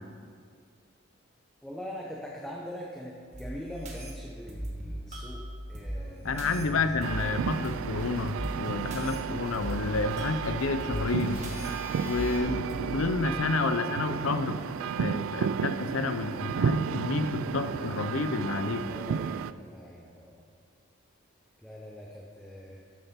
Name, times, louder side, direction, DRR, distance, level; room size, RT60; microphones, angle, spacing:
voice 1, 1.6-7.2 18.6-20.4 21.6-22.8, equal, 5° left, -3 dB, 0.7 m, -43 dB
sound 1, 3.3-13.3, equal, 35° right, 1.4 m, -39 dB
voice 2, 6.2-11.5 12.0-18.9, left 3 dB, 85° left, 10 dB, 0.6 m, -30 dB
sound 2, 7.0-19.5, right 7 dB, 80° right, 0.3 m, -33 dB
sound 3, 7.2-12.4, left 1 dB, 40° left, 2.6 m, -47 dB
12.5 x 6.8 x 4.3 m, 2.2 s
head